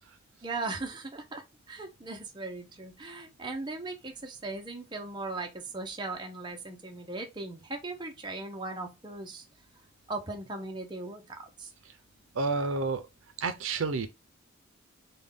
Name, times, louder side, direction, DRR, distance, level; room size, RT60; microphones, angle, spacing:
voice 1, 0.4-9.5 10.1-11.7, right 3 dB, 20° right, 0.5 m, -38 dB
voice 2, 12.3-13.1 13.4-14.1, right 3 dB, 70° right, 0.5 m, -29 dB
3.5 x 2.2 x 3.5 m
head